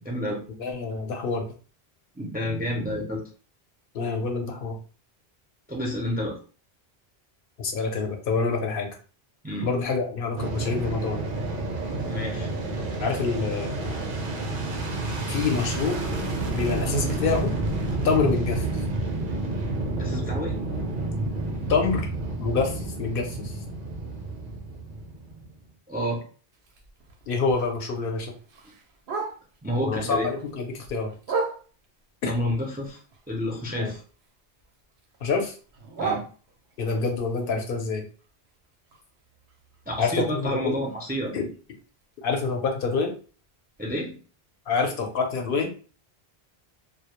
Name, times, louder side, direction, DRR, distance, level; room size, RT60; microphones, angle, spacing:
voice 1, 0.0-0.4 2.1-3.2 5.7-6.4 9.4-9.7 12.0-12.5 19.9-20.5 25.9-26.2 29.6-30.3 32.2-33.0 33.3-34.0 36.0-36.2 39.9-41.5 43.8-44.2, equal, 15° right, -2 dB, 0.3 m, -29 dB
voice 2, 0.6-1.5 3.9-4.8 7.6-9.0 9.6-11.2 13.0-14.0 15.3-16.0 16.5-17.5 18.0-18.7 21.7-22.1 22.4-23.6 27.3-28.3 29.8-31.1 32.2-32.3 33.8-33.9 35.2-35.5 36.8-38.0 40.0-40.7 41.3-41.5 42.2-43.1 44.7-45.7, left 4 dB, 65° left, 3 dB, 0.7 m, -26 dB
Fixed-wing aircraft airplane, 10.4-25.5, right 2 dB, 60° right, 0.7 m, -30 dB
Bark, 26.5-29.7 30.1-32.0 32.5-34.3 34.6-36.9 37.4-41.3 41.6-41.7 42.0-42.4 42.8-42.9 43.3-43.4 43.9-44.0, right 4 dB, 85° right, 0.8 m, -37 dB
2.2 x 2.0 x 2.8 m, 0.38 s
omnidirectional pair, 1.0 m